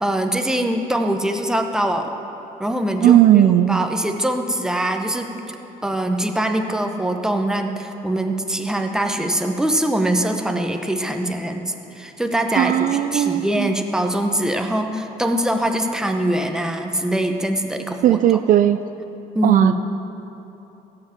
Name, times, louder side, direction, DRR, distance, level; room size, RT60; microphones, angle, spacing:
voice 1, 0.0-2.1 2.6-5.3 5.8-18.2 19.3-19.7, right 1 dB, 5° right, 4 dB, 0.9 m, -23 dB
voice 2, 3.0-3.8 12.6-13.7 18.0-18.8 19.4-19.7, right 12 dB, 55° right, 10 dB, 0.4 m, -16 dB
15.0 x 5.8 x 7.3 m, 3.0 s
cardioid pair, 110°, 17 cm